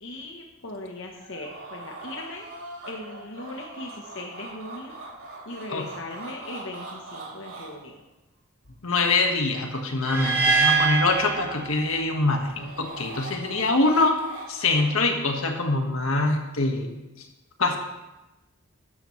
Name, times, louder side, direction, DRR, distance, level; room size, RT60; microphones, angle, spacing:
voice 1, 0.0-2.5 2.8-5.0 5.5-7.9 11.2-11.7, left 2 dB, 65° left, 1 dB, 1.1 m, -39 dB
sound 1, 1.1-7.7 12.3-14.9, right 3 dB, 85° right, 4.3 m, -41 dB
voice 2, 8.8-14.1 14.5-16.9 17.6-17.8, left 3 dB, 85° left, 3 dB, 1.6 m, -24 dB
sound 2, 10.0-12.2, right 4 dB, 10° right, 3.3 m, -24 dB
13.0 x 11.5 x 3.2 m, 1.0 s
head